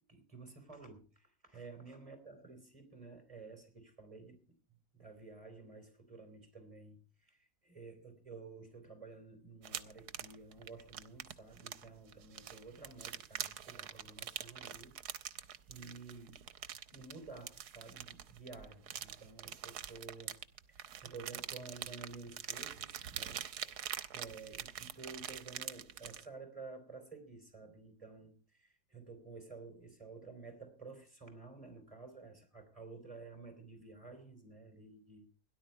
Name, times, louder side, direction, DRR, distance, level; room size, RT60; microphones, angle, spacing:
voice 1, 0.1-4.5 4.9-14.9 15.7-16.4 16.9-20.4 20.7-23.9 24.1-35.3, right 4 dB, 20° right, 6 dB, 4.2 m, -52 dB
sound 1, 9.6-26.3, right 10 dB, 85° right, 1.4 m, -45 dB
17.5 x 11.0 x 4.7 m, 0.35 s
omnidirectional pair, 1.7 m